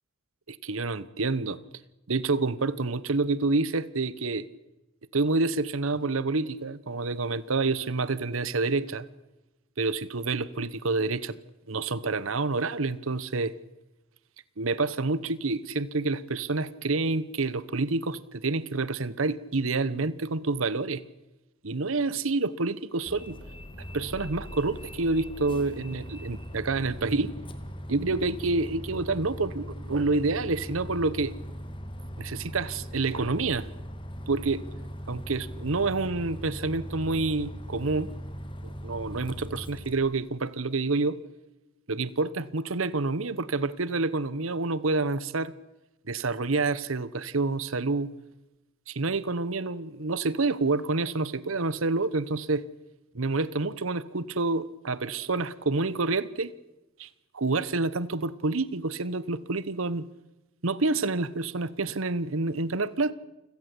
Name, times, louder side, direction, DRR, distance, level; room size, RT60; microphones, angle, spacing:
voice 1, 0.5-1.6 2.1-4.4 5.1-9.0 9.8-11.4 11.7-13.5 14.6-21.0 21.6-23.4 23.9-27.3 27.9-31.3 32.2-33.7 34.3-34.6 35.1-38.1 38.6-41.2 41.9-45.5 46.1-48.1 48.9-52.6 53.1-56.5 57.0-57.1 57.3-60.0 60.6-63.1, right 3 dB, 80° right, 17 dB, 1.0 m, -28 dB
Bus, 23.1-40.0, equal, 25° left, 2.5 m, -40 dB
29.0 x 17.0 x 8.3 m, 1.0 s
head